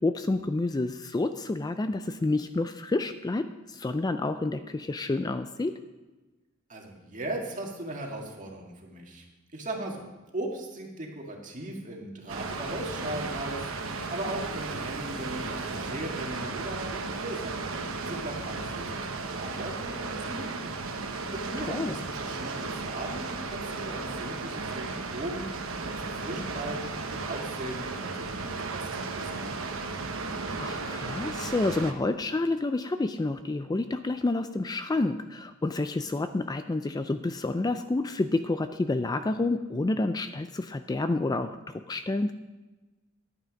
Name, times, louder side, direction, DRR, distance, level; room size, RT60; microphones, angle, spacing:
voice 1, 0.0-5.7 21.7-22.0 30.6-42.3, left 2 dB, 20° left, 9 dB, 0.4 m, -29 dB
voice 2, 6.7-9.3 9.5-17.6 18.0-20.7 21.3-29.8, right 1 dB, 40° right, 0 dB, 2.0 m, -38 dB
Water, 12.3-31.9, right 3 dB, 85° right, 1.0 m, -35 dB
11.0 x 9.3 x 5.2 m, 1.2 s
head